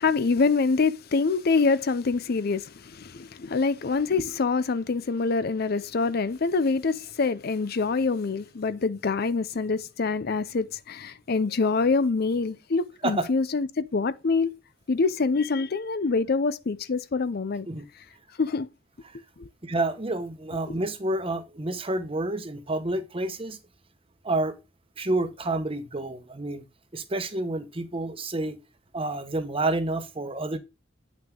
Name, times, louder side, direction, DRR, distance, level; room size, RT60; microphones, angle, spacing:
voice 1, 0.0-14.6 14.9-17.7 18.4-18.7 19.4-19.5 20.7-20.8, left 4 dB, 55° left, 0.5 m, -25 dB
voice 2, 19.6-23.6 24.2-24.5 25.0-26.6 26.9-28.6 28.9-30.6, right 2 dB, 30° right, 1.1 m, -29 dB
8.8 x 5.9 x 3.7 m
head